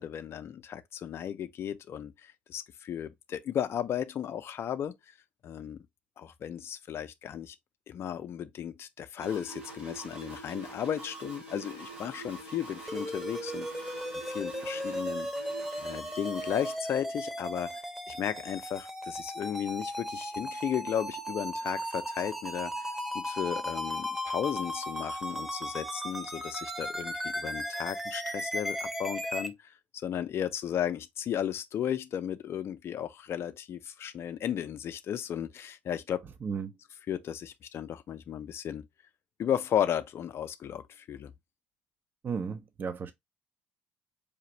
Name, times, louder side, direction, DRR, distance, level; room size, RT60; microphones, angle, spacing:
voice 1, 0.0-5.1 5.4-5.8 6.2-7.6 7.9-15.3 15.8-36.2 37.1-38.8 39.4-41.3, left 9 dB, 45° left, 0.4 m, -35 dB
sound 1, 9.2-16.7, right 3 dB, 90° right, 1.8 m, -44 dB
sound 2, 12.9-29.5, equal, 5° right, 0.8 m, -36 dB
voice 2, 36.4-36.7 42.2-43.1, right 6 dB, 35° right, 0.5 m, -34 dB
4.9 x 2.5 x 3.0 m
hypercardioid pair, 55°, 6 cm